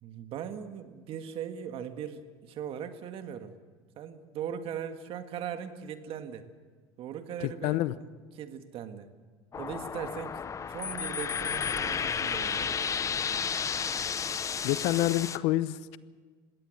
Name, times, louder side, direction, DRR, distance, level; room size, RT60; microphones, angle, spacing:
voice 1, 0.0-3.6 4.0-6.5 7.0-7.8 8.4-9.1 9.6-10.4 10.7-12.7, right 8 dB, 55° right, 8 dB, 1.8 m, -39 dB
voice 2, 7.4-7.9 14.6-16.0, left 16 dB, 70° left, 16 dB, 0.8 m, -28 dB
sound 1, 9.5-15.4, left 6 dB, 30° left, 0.8 m, -32 dB
20.5 x 16.5 x 7.9 m, 1.5 s
supercardioid pair, 100°, 11 cm